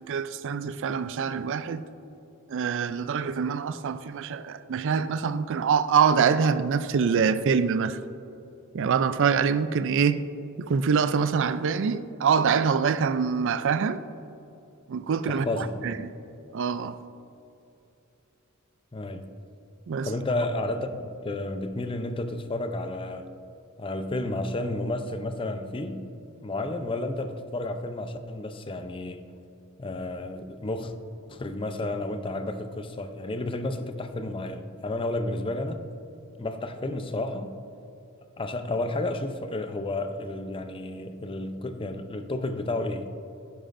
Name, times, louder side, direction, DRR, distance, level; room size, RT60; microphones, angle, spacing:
voice 1, 0.0-1.8 2.5-8.0 8.7-10.2 10.6-14.0 14.9-16.0 16.5-17.0 19.9-20.1, right 6 dB, 60° right, 0.4 m, -25 dB
voice 2, 15.3-15.8 18.9-19.3 20.0-23.3 23.8-26.0 26.4-29.3 29.8-30.9 31.3-35.8 36.4-37.6 38.4-43.2, left 2 dB, 25° left, 0.5 m, -31 dB
11.5 x 10.0 x 2.6 m
head